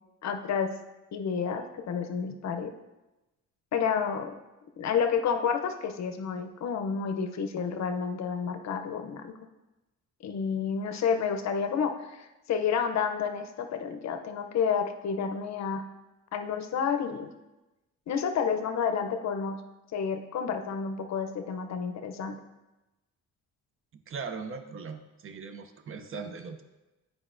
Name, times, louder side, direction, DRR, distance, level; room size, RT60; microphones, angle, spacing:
voice 1, 0.2-0.7 1.1-2.7 3.7-4.3 4.8-9.3 10.2-15.8 16.3-17.3 18.1-19.6 19.9-22.4, left 6 dB, 60° left, 7 dB, 0.6 m, -30 dB
voice 2, 23.9-26.6, right 5 dB, 45° right, 8 dB, 0.5 m, -39 dB
8.0 x 4.8 x 2.5 m, 1.0 s
cardioid pair, 100°, 31 cm